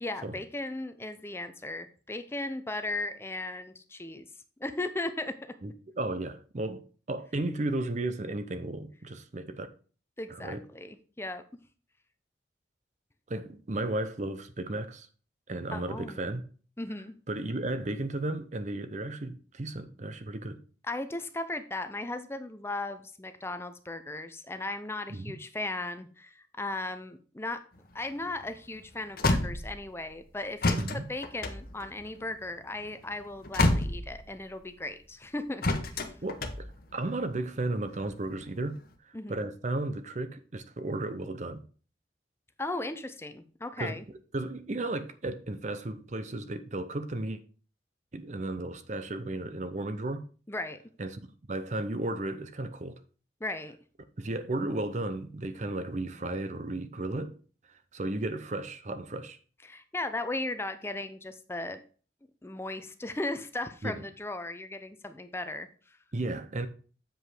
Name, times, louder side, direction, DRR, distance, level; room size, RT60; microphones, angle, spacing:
voice 1, 0.0-4.3 4.6-5.3 10.2-11.4 15.7-16.3 16.8-17.1 20.8-27.6 27.9-35.6 35.9-36.1 39.1-39.5 42.6-44.0 50.5-50.8 53.4-53.8 59.6-61.8 62.4-65.7, left 2 dB, 15° left, 0.6 m, -36 dB
voice 2, 5.6-6.8 7.1-9.7 10.3-10.6 13.3-15.1 15.5-16.4 17.3-20.6 25.1-25.4 30.8-31.1 36.2-38.8 39.3-41.6 43.8-44.0 44.3-47.4 48.1-50.2 51.0-51.2 51.5-53.0 54.2-57.4 57.7-59.4 63.8-64.0 66.1-66.7, right 2 dB, 40° right, 0.7 m, -34 dB
sound 1, 27.8-30.1 30.6-34.5 35.6-37.2 37.8-38.8, left 2 dB, 50° left, 1.0 m, -30 dB
7.8 x 5.2 x 4.9 m
head